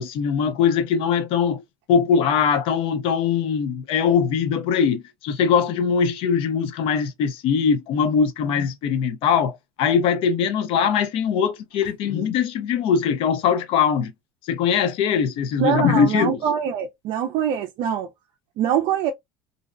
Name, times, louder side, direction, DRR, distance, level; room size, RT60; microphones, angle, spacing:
voice 1, 0.0-1.6 1.9-14.1 14.5-16.4, left 7 dB, 60° left, 0.5 m, -21 dB
voice 2, 15.6-18.1 18.6-19.1, right 8 dB, 60° right, 0.4 m, -23 dB
2.6 x 2.0 x 2.4 m
supercardioid pair, 110°, 11 cm